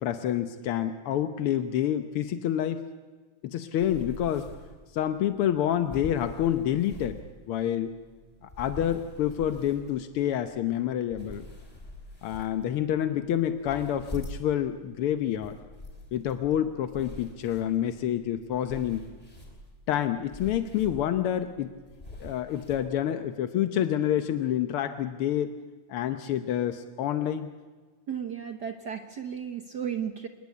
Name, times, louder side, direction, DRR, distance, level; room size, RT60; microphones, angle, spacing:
voice 1, 0.0-2.8 3.4-4.5 4.9-7.2 7.5-7.9 8.4-11.5 12.2-15.6 16.1-19.1 19.9-21.7 22.2-25.5 25.9-27.5, left 10 dB, 70° left, 9 dB, 1.3 m, -28 dB
sound 1, 3.8-22.8, left 1 dB, 10° left, 4.1 m, -45 dB
voice 2, 28.1-30.3, right 8 dB, 70° right, 6 dB, 0.9 m, -34 dB
27.5 x 20.5 x 8.4 m, 1.4 s
omnidirectional pair, 3.5 m